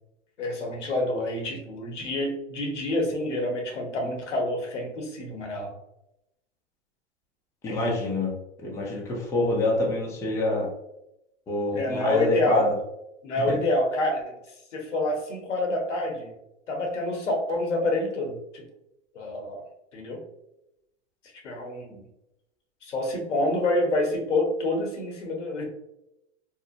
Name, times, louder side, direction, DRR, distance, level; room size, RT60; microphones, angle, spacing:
voice 1, 0.4-5.7 7.7-8.0 11.7-12.7 13.2-14.2 14.7-16.4 16.7-18.6 19.1-19.7 19.9-20.2 21.4-22.0 22.8-25.6, left 1 dB, 90° left, 1 dB, 0.9 m, -27 dB
voice 2, 7.6-8.3 8.6-10.7 11.5-12.7 13.5-13.6, left 2 dB, 10° left, -2 dB, 0.4 m, -26 dB
2.8 x 2.0 x 2.4 m, 0.86 s
hypercardioid pair, 115°, 35 cm